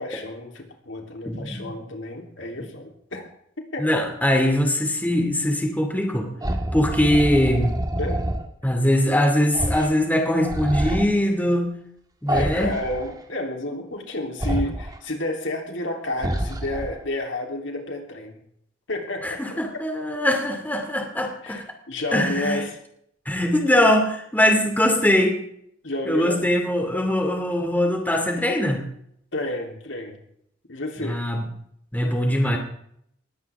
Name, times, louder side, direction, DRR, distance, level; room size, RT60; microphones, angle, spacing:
voice 1, 0.0-3.2 3.7-3.9 8.0-8.3 12.3-18.4 18.9-19.8 21.4-22.8 25.8-26.4 29.3-30.2 30.7-31.2, left 1 dB, 70° left, 2 dB, 3.5 m, -31 dB
voice 2, 1.3-1.7 3.8-6.3 6.7-7.8 8.6-11.7 12.2-12.7 19.2-21.6 22.1-22.6 23.3-25.4 26.1-28.8 31.0-31.5 31.9-32.6, left 1 dB, 10° left, 3 dB, 2.6 m, -21 dB
sound 1, 6.4-8.5 9.5-9.9 10.2-11.1 12.3-13.2 14.4-15.0 16.1-17.1, right 1 dB, 20° right, 1.6 m, -27 dB
20.5 x 16.5 x 3.6 m, 0.71 s
head